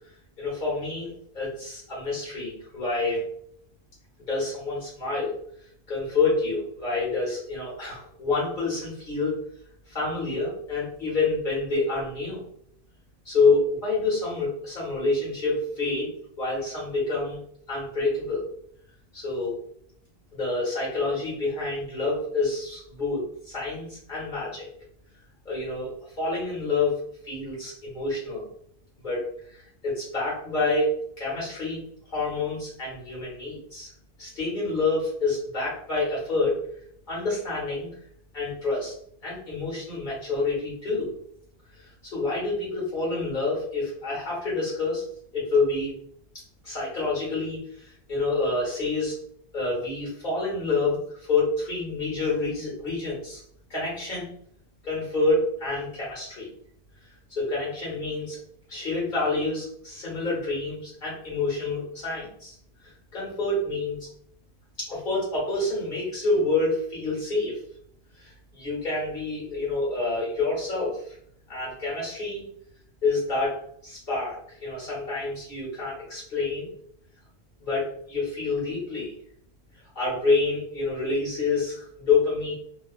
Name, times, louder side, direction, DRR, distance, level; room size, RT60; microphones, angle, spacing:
voice 1, 0.4-3.2 4.3-5.4 5.9-9.4 9.9-12.4 13.2-16.1 16.4-17.4 17.7-18.5 19.1-19.6 20.3-24.7 25.4-27.0 27.2-28.5 29.0-29.2 29.5-31.8 32.1-33.9 34.2-36.6 37.1-37.9 38.3-38.9 39.2-41.1 41.7-45.0 45.3-45.9 46.6-49.1 49.5-51.0 51.3-53.4 53.7-54.3 54.8-56.5 57.3-58.4 58.7-62.5 62.8-64.0 64.8-67.6 68.1-71.2 71.5-72.4 73.0-76.7 77.6-79.1 79.9-82.5, left 3 dB, 55° left, -5 dB, 1.5 m, -28 dB
2.9 x 2.3 x 2.3 m, 0.66 s
omnidirectional pair, 1.0 m